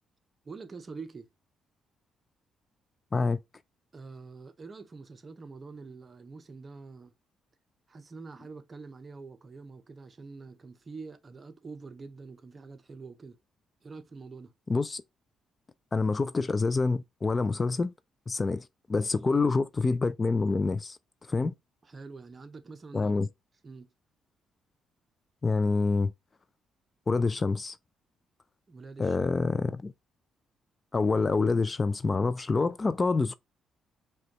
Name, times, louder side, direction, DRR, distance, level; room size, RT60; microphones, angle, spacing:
voice 1, 0.4-1.3 3.9-7.1 7.9-13.4 13.8-14.5 19.4-19.5 21.8-23.2 23.6-23.9 28.7-29.4, right 4 dB, 35° right, 0.7 m, -45 dB
voice 2, 14.7-15.0 15.9-17.9 18.3-21.0 21.3-21.5 22.9-23.3 25.4-26.1 27.1-27.8 29.0-29.9 30.9-33.3, left 3 dB, 30° left, 0.3 m, -27 dB
4.9 x 2.2 x 2.9 m
cardioid pair, 90°, 0 cm